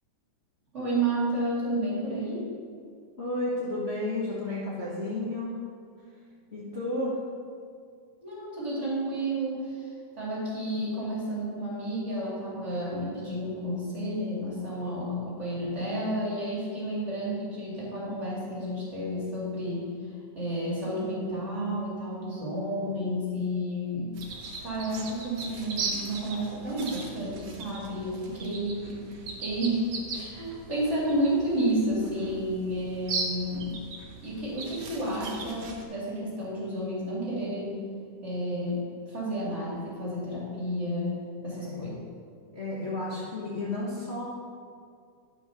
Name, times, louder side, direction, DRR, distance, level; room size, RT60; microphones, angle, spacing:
voice 1, 0.7-2.5 8.2-9.9 10.2-19.9 20.3-24.1 24.6-33.8 34.2-37.8 38.2-38.8 39.1-42.0, right 1 dB, 25° right, -8 dB, 3.0 m, -31 dB
voice 2, 3.2-5.5 6.5-7.2 41.5-41.8 42.5-44.2, left 1 dB, 55° left, -8 dB, 0.7 m, -32 dB
sound 1, 24.1-35.8, right 3 dB, 65° right, 2.1 m, -38 dB
11.0 x 5.5 x 5.9 m, 2.2 s
omnidirectional pair, 3.5 m